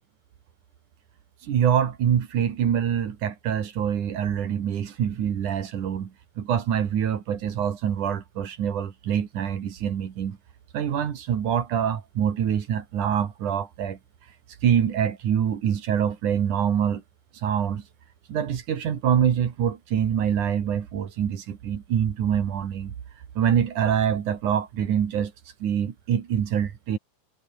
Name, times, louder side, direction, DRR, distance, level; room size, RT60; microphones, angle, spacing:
voice 1, 1.4-10.4 10.7-14.0 14.6-17.0 17.4-17.8 18.3-22.9 23.4-25.3 25.6-27.0, right 9 dB, 65° right, 3.5 m, -25 dB
omnidirectional pair, 4.0 m